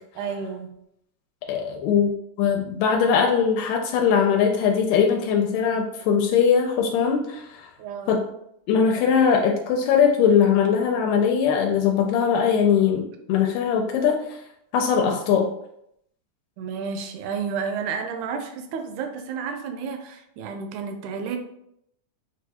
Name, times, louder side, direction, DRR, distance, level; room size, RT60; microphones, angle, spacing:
voice 1, 0.2-0.7 7.8-8.2 16.6-21.4, right 6 dB, 80° right, 6 dB, 1.8 m, -31 dB
voice 2, 1.5-7.7 8.1-8.2 8.7-14.4 14.7-15.5, left 7 dB, 85° left, 2 dB, 2.1 m, -21 dB
6.3 x 2.3 x 2.8 m, 0.75 s
omnidirectional pair, 3.7 m